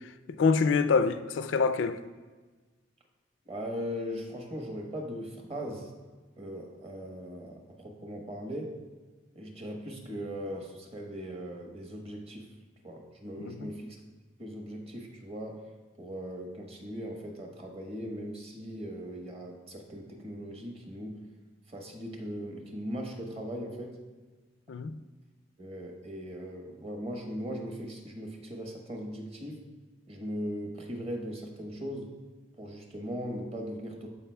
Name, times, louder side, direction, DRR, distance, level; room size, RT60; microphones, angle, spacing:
voice 1, 0.3-2.0 13.4-13.7 24.7-25.0, left 5 dB, 75° left, 0.4 m, -26 dB
voice 2, 3.5-5.9 6.4-8.8 9.3-12.5 12.8-14.0 14.4-15.6 16.0-21.2 21.7-24.0 25.6-29.6 30.1-32.1 32.6-34.1, equal, 30° right, 1.1 m, -39 dB
14.0 x 4.8 x 2.2 m
head